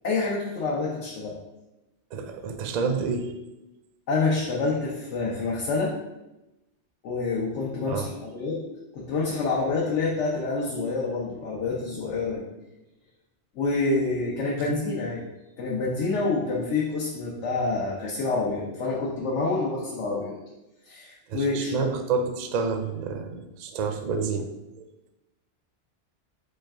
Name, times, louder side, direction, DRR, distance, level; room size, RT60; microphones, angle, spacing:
voice 1, 0.0-1.4 4.1-5.9 7.0-8.6 8.9-12.4 13.6-15.2 15.6-20.3 20.9-21.9, left 3 dB, 90° left, -5 dB, 1.1 m, -27 dB
voice 2, 2.1-3.3 7.9-8.1 14.7-14.8 21.3-24.5, right 5 dB, 60° right, 6 dB, 0.4 m, -29 dB
4.4 x 3.2 x 3.4 m, 0.98 s
omnidirectional pair, 1.2 m